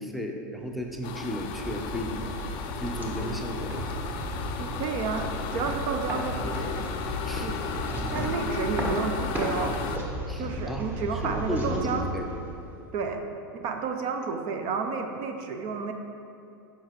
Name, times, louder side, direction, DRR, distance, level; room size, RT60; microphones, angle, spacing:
voice 1, 0.0-2.2 2.8-3.8 7.2-7.5 7.9-8.9 10.3-10.9 11.1-12.3, equal, ahead, 2 dB, 0.6 m, -35 dB
sound 1, 0.8-12.9, equal, 15° right, 1.0 m, -34 dB
sound 2, 1.0-10.0, left 7 dB, 45° left, 0.5 m, -35 dB
voice 2, 4.6-6.9 7.4-7.6 8.1-9.8 10.4-12.1 12.9-13.2 13.5-15.9, right 5 dB, 50° right, 5 dB, 0.5 m, -31 dB
7.2 x 5.5 x 3.0 m, 2.7 s
hypercardioid pair, 100°, 11 cm